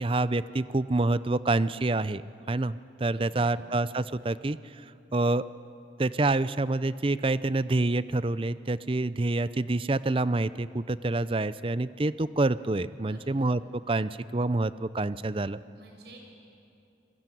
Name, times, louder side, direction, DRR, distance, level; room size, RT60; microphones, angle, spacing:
voice 1, 0.0-2.2 2.5-4.6 5.1-5.4 6.0-15.6, right 2 dB, 30° right, 16 dB, 0.5 m, -27 dB
voice 2, 3.1-3.6 13.0-13.5 15.7-16.2, right 2 dB, 65° right, 2 dB, 5.6 m, -51 dB
28.5 x 21.0 x 9.2 m, 2.6 s
head